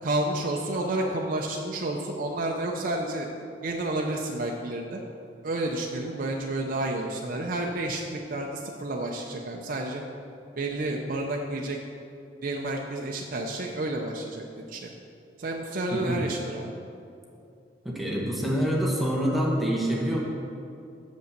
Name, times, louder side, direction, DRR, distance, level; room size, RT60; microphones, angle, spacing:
voice 1, 0.0-3.3 3.6-5.0 5.4-10.0 10.6-11.8 12.4-14.9 15.4-16.7, right 2 dB, 50° right, 0 dB, 0.5 m, -30 dB
voice 2, 17.8-20.2, equal, ahead, -4 dB, 1.1 m, -26 dB
7.0 x 5.2 x 6.6 m, 2.6 s
head